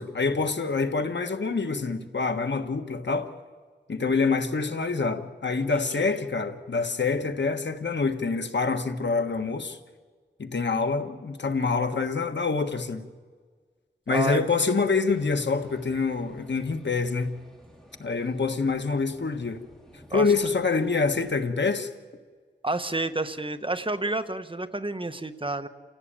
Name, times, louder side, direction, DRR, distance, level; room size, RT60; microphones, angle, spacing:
voice 1, 0.0-3.3 3.9-9.8 10.4-13.0 14.1-17.4 18.0-19.6 20.1-21.9, left 4 dB, 80° left, 1.5 m, -26 dB
voice 2, 5.7-6.1 14.1-14.5 20.1-20.3 22.6-25.7, right 2 dB, 30° right, 1.2 m, -30 dB
sound 1, 15.1-21.3, equal, 5° left, 5.0 m, -53 dB
29.5 x 16.5 x 8.9 m
wide cardioid pair, 70°, 18 cm